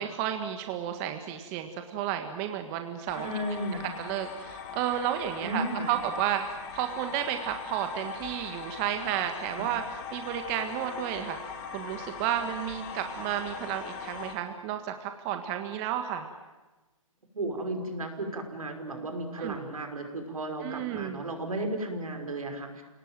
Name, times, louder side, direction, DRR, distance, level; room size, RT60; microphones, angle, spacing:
voice 1, 0.0-3.6 4.0-11.4 11.7-16.3 19.4-19.6 20.6-21.2, right 10 dB, 25° right, 6 dB, 1.7 m, -32 dB
sound 1, 3.1-14.4, left 6 dB, 35° left, 3.1 m, -41 dB
voice 2, 3.2-3.9 5.4-6.0 9.6-9.7 17.3-22.8, right 1 dB, 80° right, 4 dB, 5.8 m, -34 dB
29.5 x 19.0 x 9.2 m, 1.2 s
hypercardioid pair, 140°, 18 cm